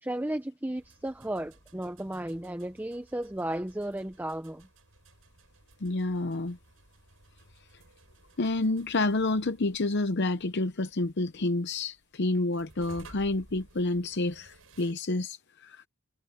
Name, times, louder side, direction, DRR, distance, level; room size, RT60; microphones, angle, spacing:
voice 1, 0.0-4.7, right 1 dB, 10° right, 0.6 m, -34 dB
sound 1, 0.8-14.9, right 2 dB, 65° right, 7.7 m, -57 dB
voice 2, 5.8-6.6 8.4-15.9, left 2 dB, 50° left, 0.8 m, -29 dB
head